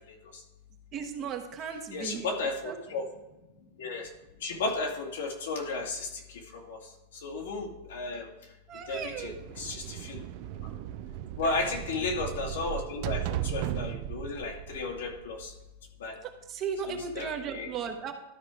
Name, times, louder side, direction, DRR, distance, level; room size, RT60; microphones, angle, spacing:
voice 1, 0.9-2.3 2.7-2.8 8.7-9.3 9.8-9.9 11.4-11.5 16.2-18.1, right 7 dB, 30° right, 5 dB, 1.1 m, -36 dB
voice 2, 1.9-3.0 3.8-4.1 4.4-6.1 6.5-6.8 7.2-8.3 8.9-10.2 11.4-15.5 16.0-16.1 16.8-17.7, left 3 dB, 90° left, 0 dB, 2.3 m, -34 dB
sound 1, 8.9-15.7, right 12 dB, 45° right, 0.4 m, -37 dB
12.5 x 4.7 x 4.8 m, 1.0 s
supercardioid pair, 155°, 0 cm